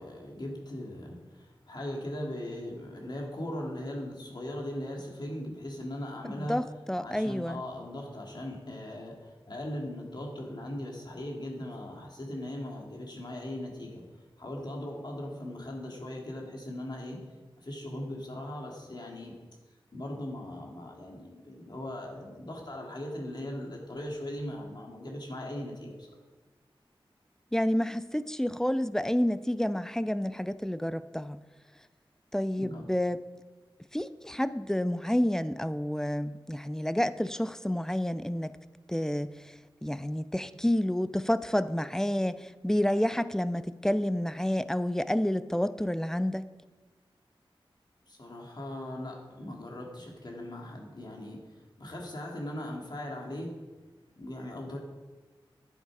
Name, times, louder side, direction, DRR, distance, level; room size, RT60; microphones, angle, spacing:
voice 1, 0.0-6.6 7.0-14.1 14.4-17.3 17.6-19.4 19.9-26.1 32.6-32.8 48.1-51.4 51.8-53.5 54.2-54.8, left 1 dB, 50° left, -1 dB, 2.7 m, -39 dB
voice 2, 6.3-7.6 27.5-31.4 32.3-33.2 33.9-38.5 38.9-39.4 39.8-46.5, left 1 dB, 5° left, 14 dB, 0.5 m, -29 dB
12.0 x 10.0 x 4.9 m, 1.2 s
wide cardioid pair, 90°, 9 cm